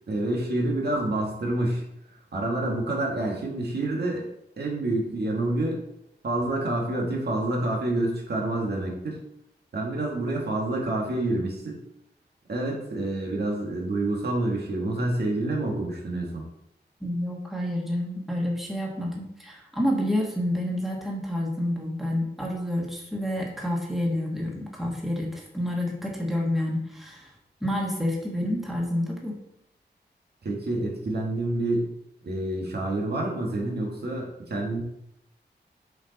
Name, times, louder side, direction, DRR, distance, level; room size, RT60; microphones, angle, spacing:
voice 1, 0.1-1.8 2.3-4.3 4.6-5.8 6.2-9.2 9.7-11.8 12.5-16.4 30.4-31.9 32.2-34.8, right 2 dB, 65° right, -1 dB, 1.8 m, -28 dB
voice 2, 17.0-27.3 27.6-29.3, left 1 dB, ahead, -2 dB, 1.5 m, -29 dB
7.3 x 5.1 x 4.1 m, 0.79 s
wide cardioid pair, 130°, 18 cm